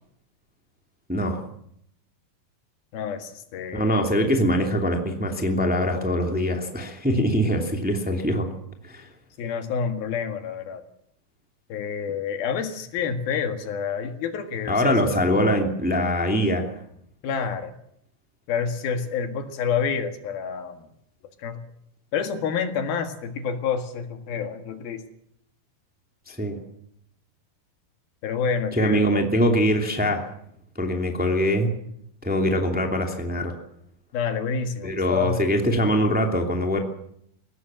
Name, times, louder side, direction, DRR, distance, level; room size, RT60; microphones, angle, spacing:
voice 1, 1.1-1.4 3.7-8.5 8.8-9.1 14.7-16.7 26.3-26.6 28.7-30.3 30.7-31.7 32.2-33.5 34.8-36.8, equal, 5° right, 3 dB, 2.0 m, -23 dB
voice 2, 2.9-4.1 9.4-10.8 11.7-14.9 15.3-15.5 17.2-17.7 18.5-20.8 21.4-21.6 22.1-25.0 28.2-29.2 34.1-35.4, left 6 dB, 85° left, 7 dB, 3.7 m, -28 dB
21.5 x 17.0 x 7.5 m, 0.72 s
omnidirectional pair, 4.2 m